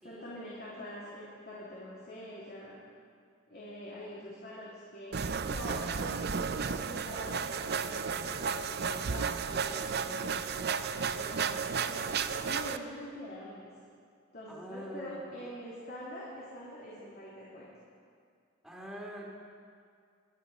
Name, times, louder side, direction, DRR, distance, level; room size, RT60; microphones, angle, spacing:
voice 1, 0.0-2.8 3.5-10.4 11.1-13.7 14.3-17.7, equal, 50° left, -7 dB, 3.0 m, -45 dB
sound 1, 5.1-12.8, right 6 dB, 55° right, 0.6 m, -33 dB
voice 2, 14.5-15.5 18.6-19.3, equal, ahead, -3 dB, 2.6 m, -46 dB
23.0 x 9.6 x 5.4 m, 2.2 s
head